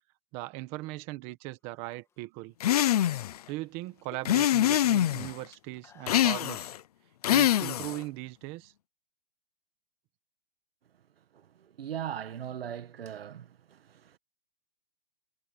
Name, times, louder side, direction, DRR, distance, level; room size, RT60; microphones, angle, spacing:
voice 1, 0.3-2.5 3.5-6.7 7.3-8.7, right 19 dB, 20° right, 1.4 m, -39 dB
sound 1, 1.7-2.2 2.8-4.6 4.9-6.6, left 7 dB, 10° left, 2.8 m, -56 dB
sound 2, 2.6-3.4 4.2-5.3 6.1-6.8 7.2-8.0, left 12 dB, 40° left, 0.7 m, -24 dB
voice 2, 11.3-14.2, right 9 dB, 70° right, 1.8 m, -39 dB
hypercardioid pair, 170°, 31 cm